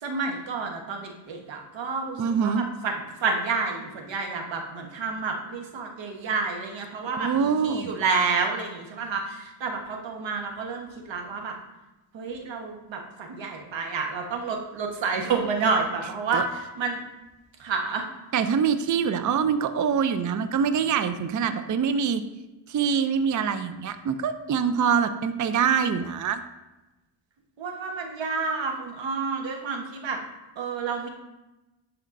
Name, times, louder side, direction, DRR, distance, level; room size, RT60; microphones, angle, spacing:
voice 1, 0.0-2.5 2.8-11.5 12.1-17.0 17.6-18.0 27.6-30.2 30.6-31.1, right 4 dB, 70° right, 2 dB, 1.3 m, -29 dB
voice 2, 2.2-2.6 7.1-8.0 16.3-16.4 18.3-22.2 22.7-26.4, right 7 dB, 40° right, 10 dB, 0.5 m, -24 dB
11.0 x 4.3 x 2.6 m, 1.0 s
cardioid pair, 65°, 47 cm